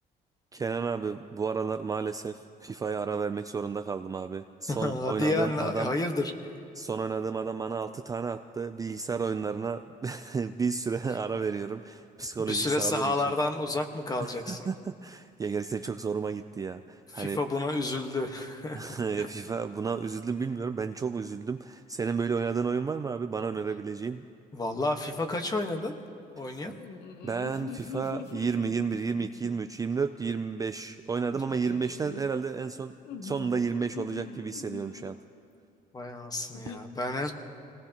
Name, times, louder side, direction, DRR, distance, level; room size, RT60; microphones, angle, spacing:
voice 1, 0.5-5.9 6.8-13.1 14.2-17.4 18.7-24.2 26.7-26.8 27.2-33.0 33.2-35.2, right 5 dB, 20° right, 8 dB, 0.4 m, -32 dB
voice 2, 4.7-6.3 12.4-14.7 17.1-19.3 24.5-26.0 26.3-26.7 35.9-37.3, left 2 dB, 20° left, 5 dB, 1.3 m, -30 dB
sound 1, 26.7-29.7 31.2-32.2 33.0-35.1 36.5-36.8, left 6 dB, 85° left, 0.9 m, -42 dB
26.0 x 18.5 x 2.9 m, 2.4 s
cardioid pair, 110°, 17 cm